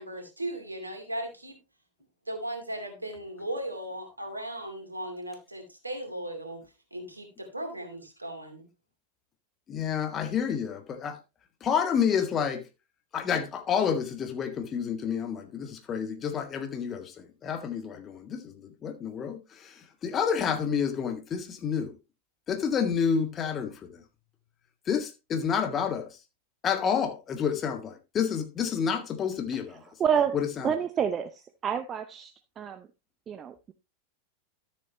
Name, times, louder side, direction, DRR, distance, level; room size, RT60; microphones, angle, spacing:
voice 1, 0.0-1.6 2.3-6.6 6.9-8.6, right 1 dB, 85° right, 2.6 m, -37 dB
voice 2, 9.7-11.2 11.6-12.6 13.1-19.7 20.0-21.9 22.5-24.0 24.9-26.1 26.6-29.8 30.3-30.7, left 7 dB, 25° left, 1.7 m, -29 dB
voice 3, 30.0-30.4 30.6-32.9 33.3-33.7, right 8 dB, 25° right, 0.6 m, -29 dB
12.5 x 7.1 x 2.9 m
figure-of-eight pair, 90°, 0 cm